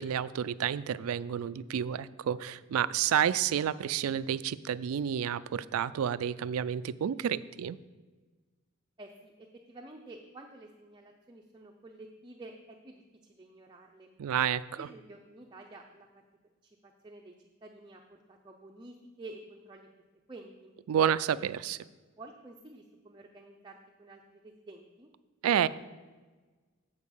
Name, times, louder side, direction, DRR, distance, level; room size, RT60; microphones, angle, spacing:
voice 1, 0.0-7.8 14.2-14.9 20.9-21.8 25.4-25.7, right 9 dB, 90° right, 17 dB, 0.3 m, -30 dB
voice 2, 9.0-12.6 12.8-14.1 14.7-16.2 16.6-19.9 20.3-20.7 22.2-25.1, right 2 dB, 20° right, 1 dB, 0.5 m, -50 dB
8.3 x 4.7 x 7.1 m, 1.3 s
head